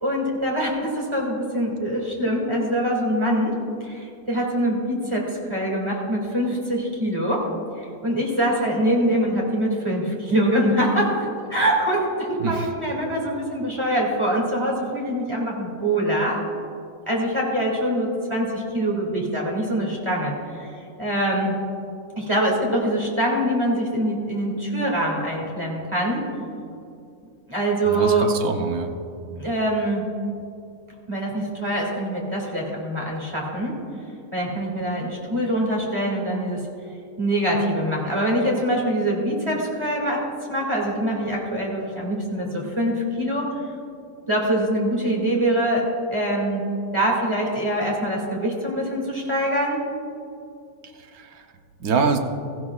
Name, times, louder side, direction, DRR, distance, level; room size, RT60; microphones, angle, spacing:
voice 1, 0.0-3.5 3.8-7.4 7.8-16.4 17.1-20.7 21.0-21.6 22.2-26.2 27.5-28.3 29.4-30.1 31.1-33.7 34.3-36.6 37.2-43.5 44.3-46.7 46.9-49.9, right 1 dB, 20° right, -3 dB, 2.3 m, -24 dB
voice 2, 27.9-28.9 51.1-51.4 51.8-52.2, right 5 dB, 70° right, 5 dB, 1.3 m, -24 dB
17.0 x 14.5 x 2.4 m, 2.5 s
omnidirectional pair, 1.7 m